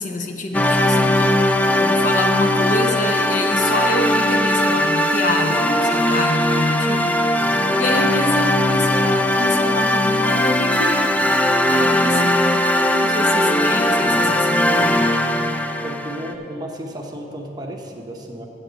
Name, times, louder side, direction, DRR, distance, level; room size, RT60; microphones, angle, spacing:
voice 1, 0.0-7.2 7.5-11.0 11.7-12.4 13.0-15.1, left 2 dB, 45° left, 4 dB, 0.7 m, -27 dB
sound 1, 0.5-16.3, left 1 dB, 10° left, 0.4 m, -19 dB
sound 2, 8.5-17.9, left 8 dB, 55° right, 0.7 m, -51 dB
voice 2, 15.8-18.5, equal, 20° right, 1 dB, 0.9 m, -33 dB
7.7 x 6.6 x 8.0 m, 2.8 s
head